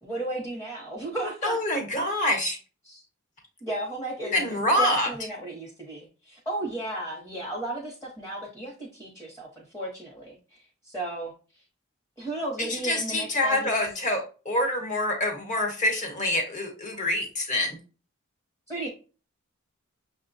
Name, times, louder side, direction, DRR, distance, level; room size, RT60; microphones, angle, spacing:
voice 1, 0.0-1.6 2.8-3.0 3.6-11.3 12.2-13.9 18.7-18.9, right 2 dB, 10° left, -3 dB, 0.8 m, -34 dB
voice 2, 1.4-2.6 4.3-5.1 12.6-17.8, left 1 dB, 35° left, 2 dB, 1.1 m, -26 dB
6.3 x 2.2 x 2.5 m, 0.35 s
head